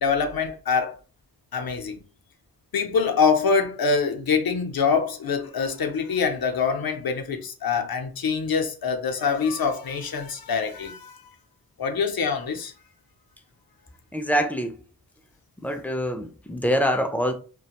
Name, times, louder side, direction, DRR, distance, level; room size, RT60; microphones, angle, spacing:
voice 1, 0.0-0.9 1.5-2.0 2.7-11.3 11.8-12.7, left 5 dB, 65° left, 0.6 m, -25 dB
voice 2, 14.1-14.7 15.6-17.3, equal, 5° left, 0.4 m, -25 dB
2.4 x 2.2 x 2.8 m
wide cardioid pair, 65°, 39 cm